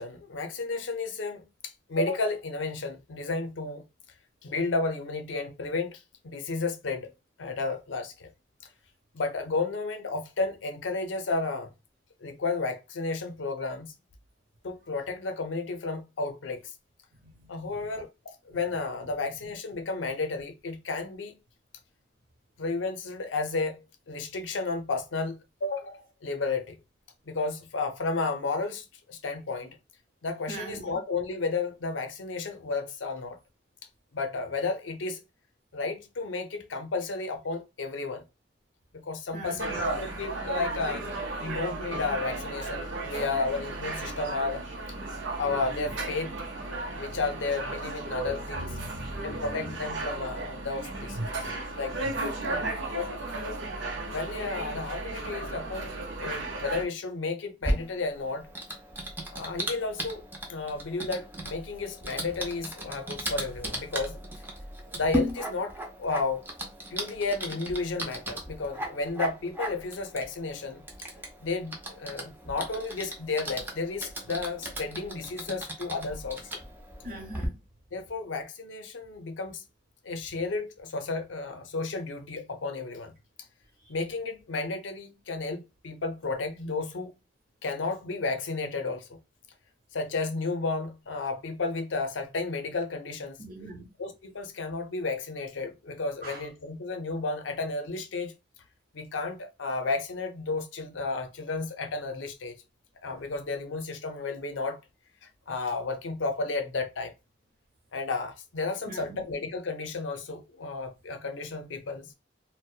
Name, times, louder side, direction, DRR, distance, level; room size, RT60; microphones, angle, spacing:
voice 1, 0.0-3.8 4.4-7.1 7.4-8.3 9.1-11.7 12.2-13.9 14.6-16.7 17.5-21.4 22.6-26.8 27.3-29.8 30.2-33.4 34.1-35.2 35.7-38.2 38.9-41.1 41.4-44.6 45.4-46.3 46.9-48.7 49.2-51.4 51.8-52.1 52.9-53.1 54.1-58.5 59.3-64.1 64.9-66.4 66.9-70.8 71.4-76.6 77.9-79.6 80.0-83.1 83.9-87.1 87.6-89.2 89.9-93.4 94.0-98.3 98.9-102.6 103.0-104.8 105.2-107.1 107.9-112.1, left 3 dB, 90° left, 0.5 m, -32 dB
voice 2, 17.2-17.9 18.5-18.6 30.5-31.0 39.3-39.8 48.5-49.9 51.2-51.3 52.4-52.8 77.0-77.6 93.4-93.8 96.2-96.4 108.9-109.2, right 1 dB, 50° right, 1.0 m, -40 dB
sound 1, 39.6-56.8, right 2 dB, 80° right, 0.6 m, -35 dB
Typing, 57.6-77.5, equal, 10° right, 0.5 m, -37 dB
2.7 x 2.1 x 2.3 m
head